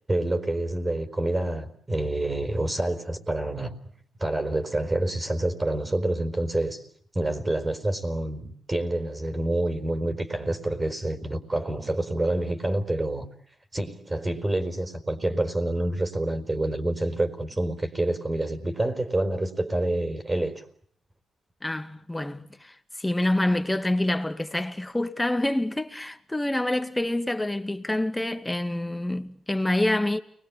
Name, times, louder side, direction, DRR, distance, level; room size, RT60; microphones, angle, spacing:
voice 1, 0.1-3.7 4.2-6.8 7.1-13.3 13.7-20.6, right 1 dB, 20° right, 4.5 m, -27 dB
voice 2, 21.6-30.2, left 1 dB, 10° left, 2.5 m, -27 dB
30.0 x 22.5 x 8.7 m
cardioid pair, 85°, 0 cm